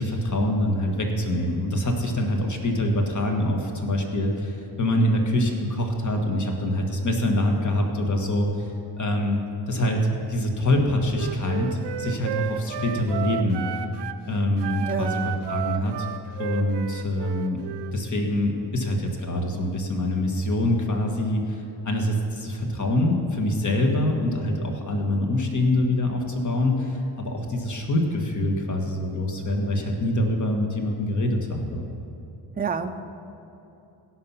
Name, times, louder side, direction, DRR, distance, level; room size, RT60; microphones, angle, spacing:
voice 1, 0.0-8.7 9.0-9.4 9.7-10.0 10.3-13.6 14.3-16.1 16.4-17.6 17.9-31.9, left 1 dB, 45° left, 2 dB, 1.6 m, -25 dB
Wind instrument woodwind instrument, 11.1-14.2 14.6-18.0, right 9 dB, 75° right, 0.6 m, -33 dB
voice 2, 14.8-15.2 32.6-33.0, right 5 dB, 20° right, 7 dB, 0.5 m, -28 dB
17.0 x 5.9 x 5.7 m, 2.9 s
cardioid pair, 90°, 42 cm